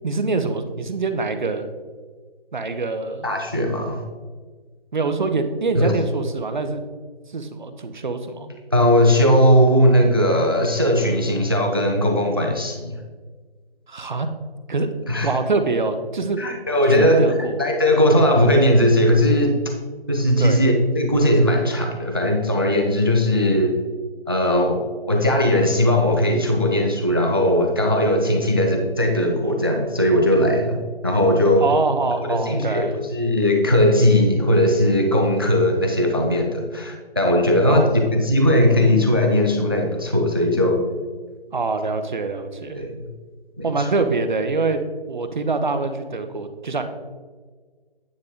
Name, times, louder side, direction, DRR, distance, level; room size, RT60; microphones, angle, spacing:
voice 1, 0.0-1.7 2.5-3.3 4.9-6.9 7.3-8.5 13.9-14.3 14.7-14.9 15.2-16.4 16.9-17.6 20.4-20.6 31.6-32.9 37.7-37.9 41.5-42.8 43.6-44.8 45.1-46.8, right 3 dB, 50° right, 8 dB, 0.8 m, -24 dB
voice 2, 3.2-4.0 5.8-5.9 8.7-13.0 15.1-15.3 16.4-17.2 17.6-19.7 20.1-23.7 24.3-24.8 25.1-31.7 32.3-40.8 42.7-43.0 43.6-43.9, left 1 dB, 25° right, 3 dB, 0.4 m, -18 dB
9.6 x 6.2 x 3.6 m, 1.5 s
figure-of-eight pair, 155°, 31 cm